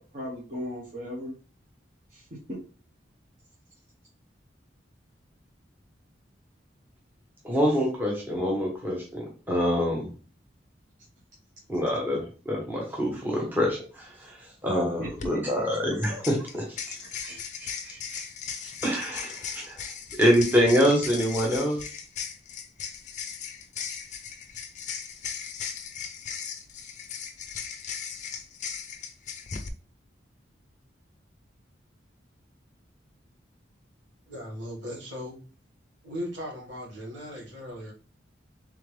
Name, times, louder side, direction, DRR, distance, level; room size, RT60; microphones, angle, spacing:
voice 1, 0.0-1.4 2.1-2.6 15.0-15.6 17.3-17.4, left 1 dB, 45° right, -5 dB, 0.9 m, -37 dB
voice 2, 7.4-10.1 11.7-18.3 18.6-19.8 20.1-21.8, equal, 10° right, -2 dB, 0.9 m, -26 dB
sound 1, 15.0-15.3 16.0-29.7, left 7 dB, 40° left, 0.4 m, -37 dB
voice 3, 34.3-35.4 36.0-37.9, equal, 75° right, -2 dB, 1.5 m, -37 dB
3.7 x 3.3 x 3.2 m, 0.37 s
head